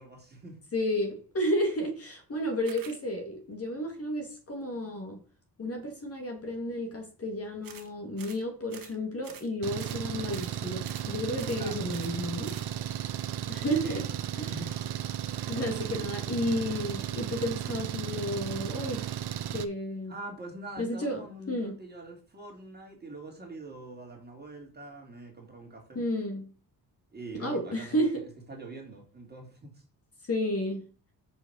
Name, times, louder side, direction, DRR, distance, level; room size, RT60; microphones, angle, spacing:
voice 1, 0.0-0.6 11.5-12.3 13.8-14.0 14.5-14.7 15.5-16.1 20.1-26.0 27.1-29.8, right 2 dB, 25° right, 3.1 m, -44 dB
voice 2, 0.7-5.2 5.6-12.6 13.5-14.0 14.4-14.5 15.5-19.1 19.5-20.1 20.8-21.8 25.9-26.5 27.4-28.2 30.3-30.9, equal, 35° left, 2.2 m, -32 dB
sound 1, 2.6-3.0 7.6-7.9 8.2-8.4 8.7-9.0 9.2-9.5 9.8-10.0 10.3-10.6 10.8-11.1 11.4-11.6 11.9-12.2 12.4-12.7, right 7 dB, 55° right, 1.6 m, -48 dB
Engine, 9.6-19.6, right 10 dB, 75° right, 0.9 m, -35 dB
6.5 x 5.4 x 6.3 m
cardioid pair, 135°, 40 cm